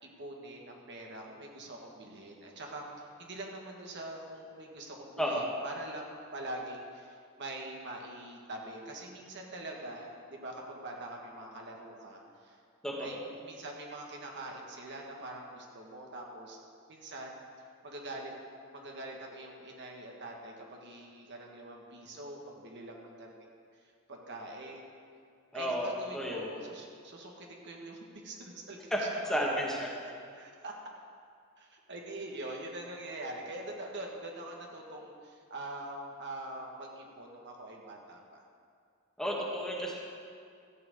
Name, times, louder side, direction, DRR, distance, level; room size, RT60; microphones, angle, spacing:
voice 1, 0.0-12.6 13.0-16.6 16.9-17.4 17.8-18.3 18.7-23.3 24.1-25.0 25.5-29.1 30.0-30.7 31.6-38.4, right 1 dB, 55° right, 0 dB, 1.7 m, -44 dB
voice 2, 12.8-13.2 25.5-26.5 28.9-29.0 29.2-29.9 39.2-39.9, equal, 5° left, -3 dB, 1.7 m, -32 dB
14.0 x 6.1 x 7.9 m, 2.3 s
head